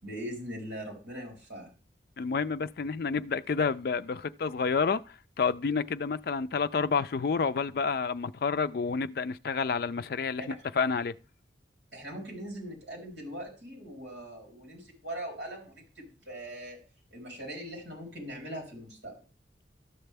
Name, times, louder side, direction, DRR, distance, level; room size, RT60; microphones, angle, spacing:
voice 1, 0.0-1.7 10.4-10.6 11.9-16.8 17.1-19.2, right 1 dB, 65° right, 3.9 m, -41 dB
voice 2, 2.2-11.2, left 5 dB, 55° left, 0.4 m, -29 dB
12.5 x 6.6 x 3.4 m
head